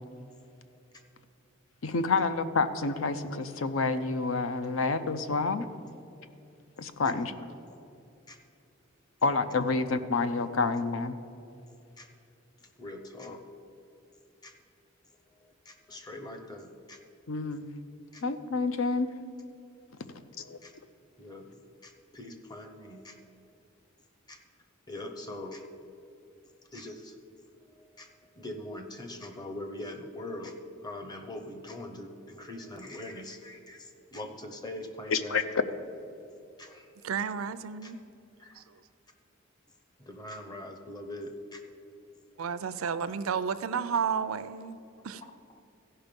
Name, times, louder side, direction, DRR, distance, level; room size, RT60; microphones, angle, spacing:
voice 1, 1.8-5.7 6.8-7.3 9.2-11.2 17.3-17.7 18.2-19.1 20.4-20.6 35.1-35.4, left 4 dB, 70° left, 0.6 m, -28 dB
voice 2, 7.0-7.5 8.3-8.4 9.6-9.8 12.0-12.1 12.6-13.5 14.4-14.5 15.3-17.0 18.1-18.2 20.6-20.8 21.2-23.6 24.3-24.4 24.9-25.6 26.7-27.2 27.7-28.1 28.3-30.6 30.8-35.5 36.6-36.9 37.8-37.9 38.4-38.6 40.0-41.6 42.7-43.0 43.4-43.6, left 1 dB, 20° left, 0.8 m, -43 dB
voice 3, 37.0-38.0 38.6-38.7 42.4-44.8 45.0-45.2, right 6 dB, 85° right, 0.5 m, -31 dB
15.5 x 5.6 x 5.3 m
head